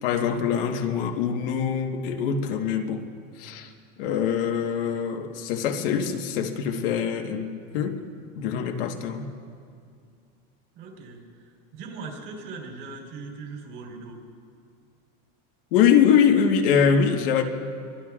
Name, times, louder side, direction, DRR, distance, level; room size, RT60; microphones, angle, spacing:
voice 1, 0.0-3.0 3.4-3.7 4.0-8.0 8.3-9.3 15.7-17.4, left 7 dB, 60° left, 3 dB, 1.4 m, -23 dB
voice 2, 10.7-14.2, right 4 dB, 45° right, 0 dB, 3.7 m, -40 dB
25.5 x 23.0 x 2.5 m, 2.3 s
supercardioid pair, 175°, 31 cm